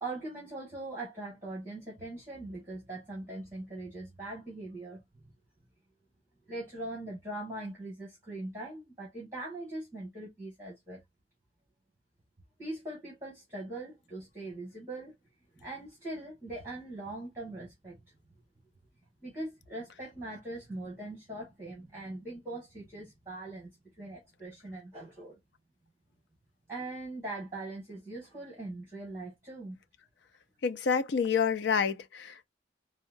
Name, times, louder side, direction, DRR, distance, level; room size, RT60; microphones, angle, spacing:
voice 1, 0.0-5.0 6.5-11.0 12.6-15.1 15.6-18.0 19.2-25.4 26.7-29.8, right 2 dB, 15° right, 1.8 m, -41 dB
voice 2, 30.6-32.5, left 6 dB, 65° left, 0.4 m, -28 dB
4.5 x 2.2 x 2.5 m
head